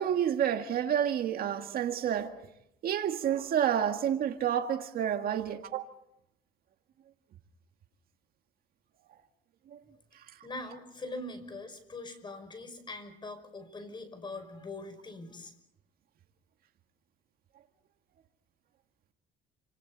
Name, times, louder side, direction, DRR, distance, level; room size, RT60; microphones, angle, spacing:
voice 1, 0.0-2.5 2.8-5.8 9.7-9.8 10.1-10.2, right 9 dB, 60° right, 1.9 m, -29 dB
voice 2, 10.4-15.5, left 2 dB, 25° left, 5.6 m, -42 dB
29.0 x 27.5 x 4.1 m
cardioid pair, 110°, 17 cm